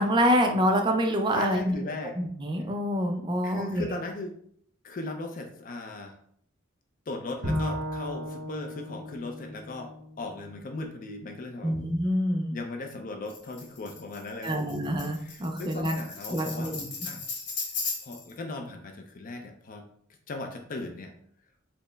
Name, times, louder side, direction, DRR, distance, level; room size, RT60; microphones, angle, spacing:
voice 1, 0.0-1.6 2.2-3.9 11.6-12.5 14.4-15.9 16.3-16.9, equal, 25° right, 3 dB, 0.4 m, -26 dB
voice 2, 1.3-2.2 3.4-4.3 4.8-6.2 7.1-11.8 12.5-14.8 15.2-16.8 17.0-17.2 18.0-19.9 20.3-21.1, left 2 dB, 45° left, 4 dB, 0.4 m, -37 dB
Bowed string instrument, 7.4-10.7, equal, 55° right, 1.0 m, -35 dB
Tambourine, 13.3-18.3, left 4 dB, 60° left, 0.8 m, -37 dB
4.2 x 2.0 x 3.3 m, 0.65 s
head